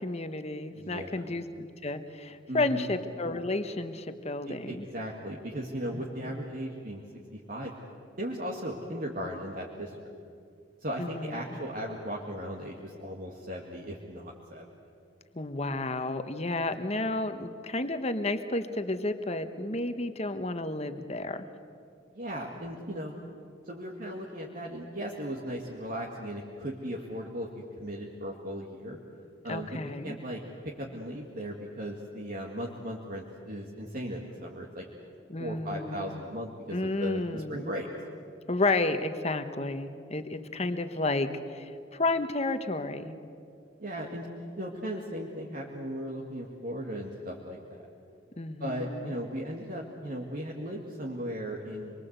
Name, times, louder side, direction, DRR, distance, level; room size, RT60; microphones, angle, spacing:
voice 1, 0.0-4.9 5.9-6.3 11.0-11.4 15.3-21.5 29.5-30.2 35.3-36.2 36.7-37.7 38.5-43.1 48.4-49.2, left 2 dB, 35° left, 9 dB, 1.2 m, -32 dB
voice 2, 0.7-1.1 2.5-2.9 4.5-7.0 7.3-7.7 8.2-10.0 10.8-14.7 22.1-23.1 23.6-29.0 29.4-34.9 35.4-37.9 43.8-44.3 44.6-47.8 48.6-51.9, equal, 45° right, -2 dB, 2.1 m, -37 dB
26.0 x 22.5 x 8.2 m, 2.4 s
head